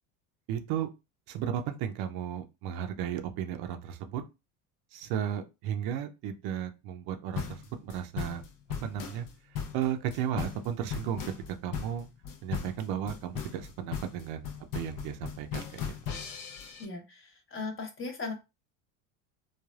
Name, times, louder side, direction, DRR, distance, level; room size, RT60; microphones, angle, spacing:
voice 1, 0.5-0.9 1.3-4.2 4.9-8.4 8.8-9.3 9.7-11.2 11.6-12.1 12.4-14.5 14.7-15.7, right 9 dB, 65° right, 0.6 m, -34 dB
sound 1, 7.3-16.8, left 8 dB, 50° left, 0.7 m, -37 dB
voice 2, 16.8-18.3, left 3 dB, 30° left, 1.0 m, -38 dB
3.2 x 2.2 x 2.3 m
supercardioid pair, 95°, 42 cm